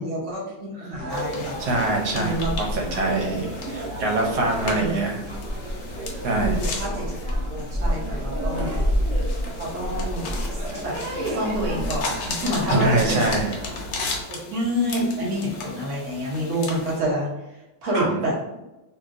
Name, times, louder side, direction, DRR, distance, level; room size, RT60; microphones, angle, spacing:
voice 1, 0.0-1.6 2.1-2.5 4.6-4.9 6.4-7.2 7.5-8.8 9.6-10.9 11.2-13.3 14.3-17.3 17.8-18.6, equal, 55° right, -4 dB, 0.9 m, -28 dB
sound 1, 0.9-14.2, equal, 15° right, 1.4 m, -29 dB
sound 2, 1.1-17.0, left 4 dB, 70° left, 1.2 m, -36 dB
voice 2, 1.6-5.2 6.2-6.6 12.7-13.6 17.9-18.2, right 2 dB, 80° right, -1 dB, 1.5 m, -24 dB
3.1 x 2.8 x 2.4 m, 1.0 s
omnidirectional pair, 2.1 m